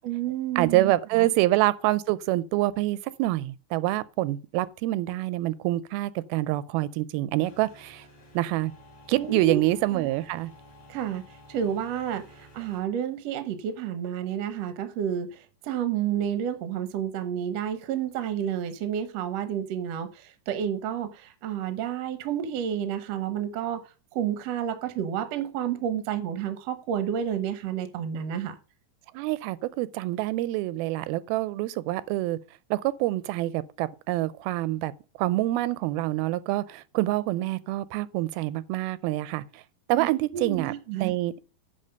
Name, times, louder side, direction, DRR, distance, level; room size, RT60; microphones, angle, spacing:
voice 1, 0.0-1.3 9.2-9.6 9.9-10.0 10.9-11.2 11.5-23.8 24.1-28.6 39.9-41.2, right 9 dB, 65° right, 1.6 m, -30 dB
voice 2, 0.6-8.0 8.3-8.7 9.1-10.5 29.1-32.4 32.7-34.9 35.2-39.6 39.9-40.7 41.0-41.3, right 16 dB, 85° right, 2.5 m, -26 dB
sound 1, 7.4-12.8, left 1 dB, 35° left, 1.9 m, -52 dB
10.0 x 4.1 x 6.5 m
omnidirectional pair, 4.3 m